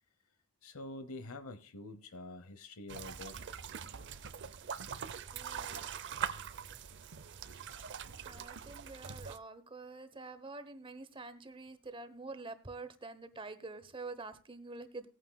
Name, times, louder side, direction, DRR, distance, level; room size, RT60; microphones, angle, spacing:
voice 1, 0.6-3.4, left 2 dB, 80° left, 0.9 m, -46 dB
sound 1, 2.9-9.4, right 7 dB, 55° right, 0.6 m, -43 dB
voice 2, 5.3-5.9 8.2-15.1, right 3 dB, 25° right, 0.9 m, -47 dB
19.0 x 9.1 x 2.2 m
head